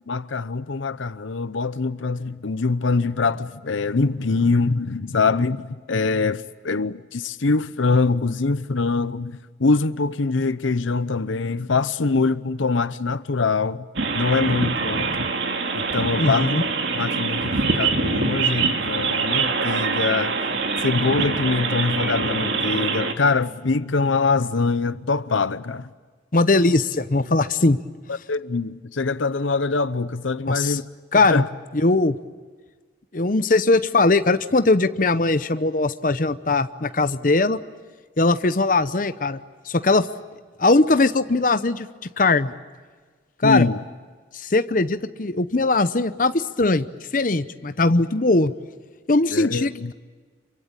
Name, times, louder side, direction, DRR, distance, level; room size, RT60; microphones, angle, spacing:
voice 1, 0.1-13.9 14.1-15.3 15.7-16.6 17.0-20.4 20.8-25.9 28.3-30.8 31.3-31.5 43.4-43.8 49.3-49.9, left 4 dB, 90° left, 0.8 m, -23 dB
sound 1, 14.0-23.1, right 4 dB, 70° right, 2.3 m, -24 dB
voice 2, 16.2-16.6 26.3-27.8 30.5-30.8 31.1-31.4 31.7-32.2 33.1-37.6 38.2-39.4 39.7-40.1 40.6-41.9 42.2-42.5 43.4-43.7 44.3-46.8 47.1-48.5 49.1-49.9, left 3 dB, 45° left, 0.8 m, -20 dB
26.5 x 24.0 x 8.9 m
head